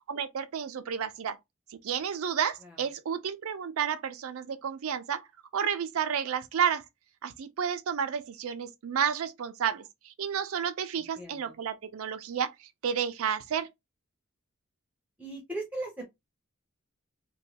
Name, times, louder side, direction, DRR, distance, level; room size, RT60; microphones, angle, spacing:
voice 1, 0.1-1.4 1.8-5.2 5.5-6.8 7.2-13.7, right 7 dB, 90° right, 0.4 m, -31 dB
voice 2, 11.0-11.5 15.2-16.0, right 2 dB, 5° right, 0.6 m, -38 dB
3.0 x 2.2 x 2.7 m
head